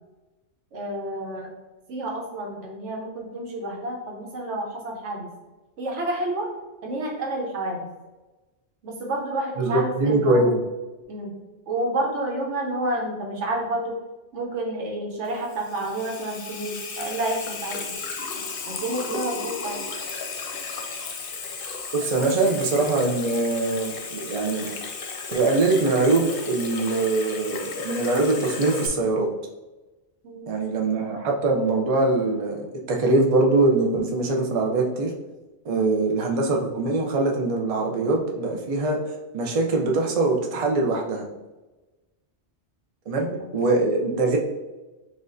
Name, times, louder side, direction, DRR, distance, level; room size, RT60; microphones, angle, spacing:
voice 1, 0.7-1.5 1.9-5.3 5.8-6.5 6.8-7.9 8.8-10.5 11.1-11.4 11.7-13.9 14.3-18.0 18.7-19.8 30.2-30.6 43.2-43.5, right 1 dB, 85° right, 0 dB, 1.2 m, -30 dB
voice 2, 9.6-10.6 21.9-24.7 25.3-29.3 30.5-35.1 35.6-39.0 39.3-41.3 43.1-43.3 43.5-44.4, right 2 dB, 45° right, 1 dB, 0.5 m, -22 dB
Water tap faucet / Sink (filling or washing), 15.2-28.9, left 4 dB, 60° left, 0.7 m, -34 dB
6.0 x 2.5 x 2.5 m, 1.1 s
omnidirectional pair, 1.2 m